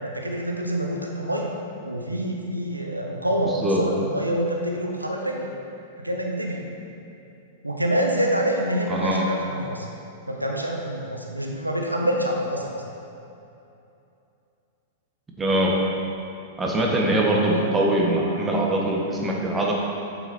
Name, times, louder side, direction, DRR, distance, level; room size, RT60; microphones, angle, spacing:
voice 1, 0.0-1.5 1.8-5.5 6.0-6.7 7.6-9.9 10.3-12.8 17.4-17.7, right 1 dB, 90° right, 1 dB, 0.9 m, -26 dB
voice 2, 3.4-3.8 8.9-9.3 15.4-15.8 16.6-19.7, right 1 dB, 15° right, -2 dB, 1.5 m, -22 dB
8.7 x 7.0 x 4.4 m, 2.7 s
figure-of-eight pair, 100°, 0 cm